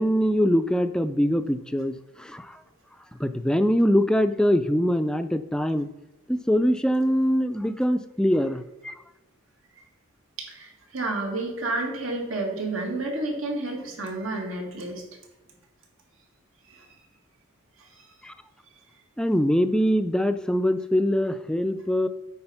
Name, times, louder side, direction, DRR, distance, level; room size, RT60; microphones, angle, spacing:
voice 1, 0.0-2.5 3.2-5.9 6.3-8.9 18.2-18.3 19.2-22.1, equal, 5° left, 9 dB, 0.3 m, -23 dB
voice 2, 10.4-15.0 16.7-16.9 18.0-18.1, right 2 dB, 85° right, 0 dB, 2.0 m, -30 dB
8.8 x 4.1 x 5.6 m, 1.1 s
head